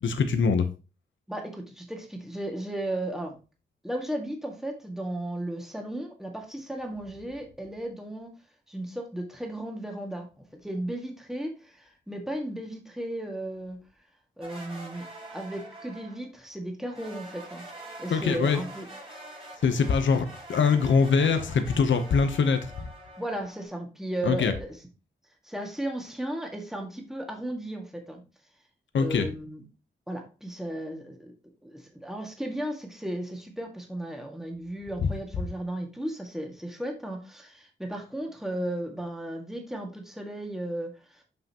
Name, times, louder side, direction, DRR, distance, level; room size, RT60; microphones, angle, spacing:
voice 1, 0.0-0.7 18.1-18.6 19.6-22.9 24.2-24.5 28.9-29.3 35.0-35.1, left 5 dB, 80° left, 8 dB, 0.8 m, -23 dB
voice 2, 1.3-3.4 3.8-8.3 8.7-13.8 14.4-17.6 18.0-18.9 23.2-24.7 25.4-28.2 28.9-29.6 30.1-31.3 31.6-41.2, right 1 dB, ahead, 1 dB, 1.9 m, -35 dB
sound 1, 14.4-16.3 16.9-23.6, right 1 dB, 30° right, 3.8 m, -45 dB
7.7 x 5.6 x 2.9 m, 0.32 s
wide cardioid pair, 85°, 19 cm